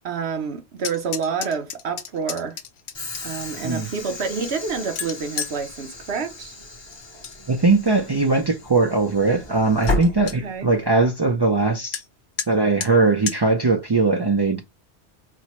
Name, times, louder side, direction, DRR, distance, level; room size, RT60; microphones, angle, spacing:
voice 1, 0.0-2.6 3.2-6.5 10.4-10.7, right 5 dB, 70° right, 1.0 m, -28 dB
sound 1, 0.8-3.4 4.0-5.6 6.9-7.4 7.7-8.2 8.7-8.8 9.2-9.3 9.6-9.7 9.9-10.4 11.9-12.0 12.4-12.5 12.8-12.9 13.3-13.4, left 8 dB, 70° left, 0.8 m, -32 dB
Train / Sliding door, 2.9-10.9, left 2 dB, 25° left, 0.7 m, -33 dB
voice 2, 7.5-12.0 12.5-14.6, right 3 dB, 45° right, 0.3 m, -20 dB
4.3 x 2.1 x 2.9 m
omnidirectional pair, 1.2 m